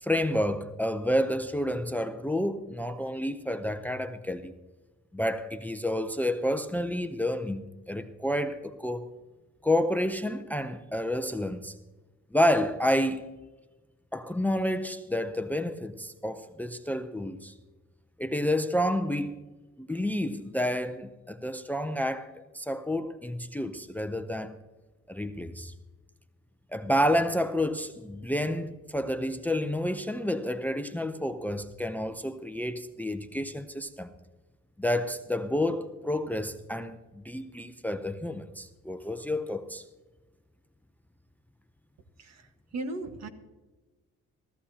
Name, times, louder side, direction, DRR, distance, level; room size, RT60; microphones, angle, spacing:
voice 1, 0.0-4.5 5.1-9.1 9.6-11.7 12.3-13.3 14.1-17.5 18.2-19.4 19.8-24.6 25.1-25.7 26.7-34.1 34.8-39.8, left 1 dB, 5° left, 0.7 m, -29 dB
voice 2, 42.7-43.3, right 2 dB, 60° right, 1.6 m, -36 dB
16.5 x 14.0 x 2.9 m
cardioid pair, 90°, 30 cm